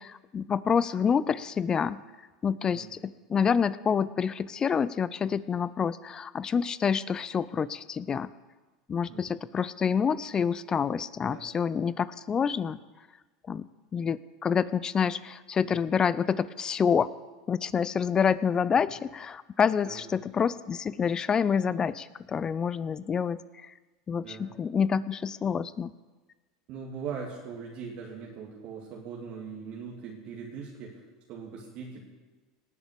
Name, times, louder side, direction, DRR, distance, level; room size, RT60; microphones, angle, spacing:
voice 1, 0.0-2.0 2.4-8.3 8.9-12.8 13.5-17.1 17.5-23.7 24.1-25.9, left 7 dB, 30° left, 18 dB, 0.5 m, -27 dB
voice 2, 24.2-24.5 26.7-32.1, right 6 dB, 55° right, -2 dB, 2.6 m, -41 dB
18.0 x 7.2 x 8.2 m, 1.2 s
hypercardioid pair, 85°, 3 cm